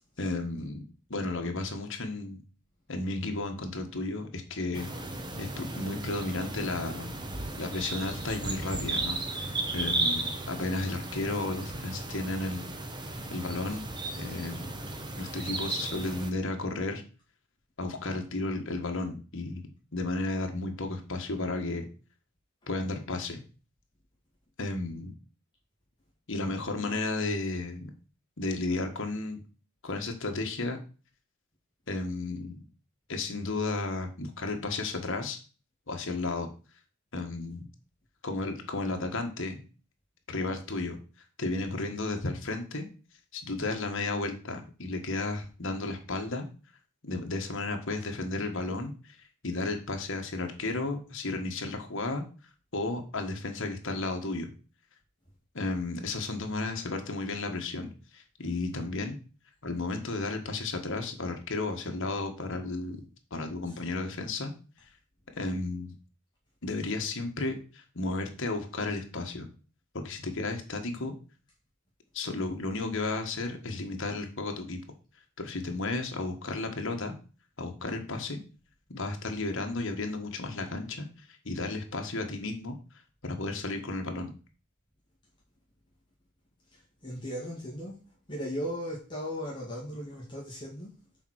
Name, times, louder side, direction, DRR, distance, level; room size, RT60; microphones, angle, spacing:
voice 1, 0.2-0.8 1.1-2.4 2.9-4.9 5.4-7.1 7.6-12.6 13.3-13.8 14.1-14.7 15.2-17.0 17.8-21.9 22.7-23.4 24.6-25.1 26.3-27.9 28.4-29.4 29.8-30.8 31.9-32.6 33.1-35.4 35.9-36.5 37.1-37.7 38.2-39.6 40.3-41.0 41.4-42.9 43.3-46.5 47.0-49.2 49.4-52.2 52.7-54.5 55.5-59.2 59.6-63.0 63.3-64.5 65.3-65.9 66.6-69.5 69.9-71.1 72.1-74.8 75.4-77.1 77.6-78.4 78.9-82.8 83.2-84.3, left 2 dB, 60° left, 4 dB, 1.5 m, -33 dB
sound 1, 4.7-16.3, right 2 dB, 20° right, 1.0 m, -35 dB
voice 2, 86.7-88.0 88.3-90.9, equal, 20° left, -5 dB, 2.0 m, -37 dB
7.0 x 4.6 x 6.3 m, 0.36 s
head